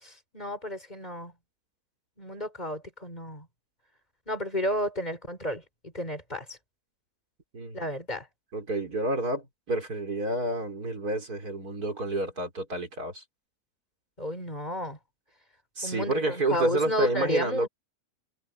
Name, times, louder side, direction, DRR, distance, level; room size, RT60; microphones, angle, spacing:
voice 1, 0.0-1.3 2.2-3.5 4.3-6.6 7.7-8.3 14.2-15.0 15.8-17.7, left 1 dB, 30° left, 4.6 m, -32 dB
voice 2, 7.5-7.9 8.5-13.2 15.8-17.7, right 2 dB, 80° right, 5.3 m, -30 dB
omnidirectional pair, 1.6 m